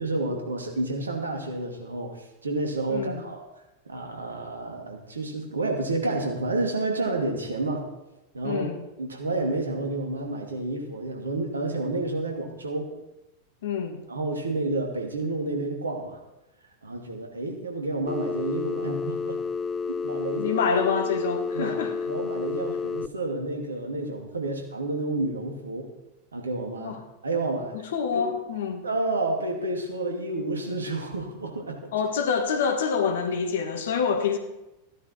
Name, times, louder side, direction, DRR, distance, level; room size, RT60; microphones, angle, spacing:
voice 1, 0.0-3.4 3.9-7.8 8.3-8.7 9.0-12.9 14.1-16.2 16.8-19.4 19.9-20.6 21.5-21.8 22.1-25.9 26.3-26.9 27.2-27.7 28.1-28.3 28.8-31.9, right 2 dB, 75° right, 2 dB, 2.4 m, -30 dB
voice 2, 2.9-3.2 8.4-8.8 13.6-14.0 20.4-21.9 26.8-27.0 27.7-28.8 31.9-34.4, left 6 dB, 60° left, 6 dB, 1.8 m, -27 dB
Telephone, 18.1-23.1, left 5 dB, 20° left, 0.4 m, -30 dB
15.0 x 10.0 x 4.4 m, 0.95 s
figure-of-eight pair, 90°, 0 cm